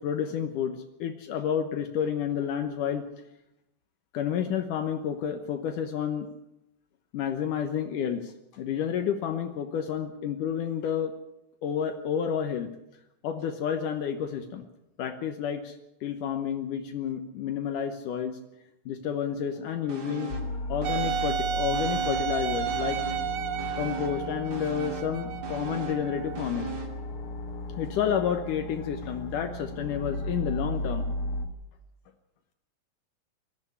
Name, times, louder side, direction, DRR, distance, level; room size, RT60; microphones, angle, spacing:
voice 1, 0.0-3.1 4.1-6.3 7.1-11.1 11.6-12.7 13.2-14.6 15.0-18.4 18.9-20.3 20.7-23.0 23.8-26.7 27.8-31.1, left 8 dB, 75° left, 6 dB, 2.6 m, -30 dB
sound 1, 19.9-20.5 20.8-22.4 22.7-27.0 27.4-27.5, right 4 dB, 30° right, 2.6 m, -39 dB
sound 2, 20.3-31.4, left 1 dB, 50° left, 1.9 m, -35 dB
Wind instrument woodwind instrument, 20.8-26.5, right 9 dB, 70° right, 2.2 m, -32 dB
20.0 x 13.5 x 9.7 m, 0.86 s
omnidirectional pair, 3.9 m